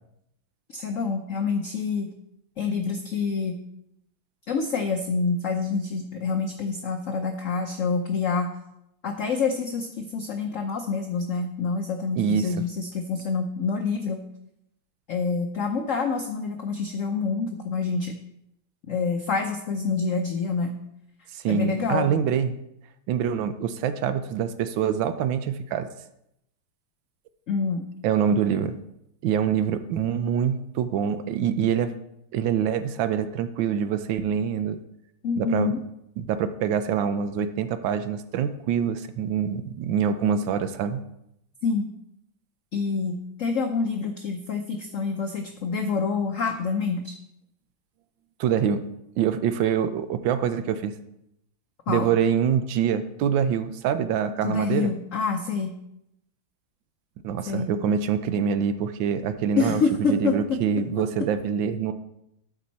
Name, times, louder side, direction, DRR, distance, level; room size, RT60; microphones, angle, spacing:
voice 1, 0.7-2.1 2.6-3.6 4.5-8.5 9.0-14.2 15.1-18.2 18.9-20.8 21.5-22.1 27.5-27.8 35.2-35.8 41.6-41.9 42.7-47.1 51.9-52.1 54.4-55.7 57.5-57.7 59.6-60.6 61.0-61.1, left 4 dB, 75° left, 4 dB, 0.7 m, -27 dB
voice 2, 12.2-12.6 21.3-22.5 23.1-25.9 28.0-28.8 29.2-31.9 32.3-34.8 35.4-35.7 36.2-41.0 48.4-48.8 49.2-50.9 51.9-54.9 57.2-59.8 60.1-61.9, right 8 dB, 75° right, 11 dB, 1.3 m, -25 dB
13.0 x 5.3 x 4.2 m, 0.81 s
omnidirectional pair, 2.2 m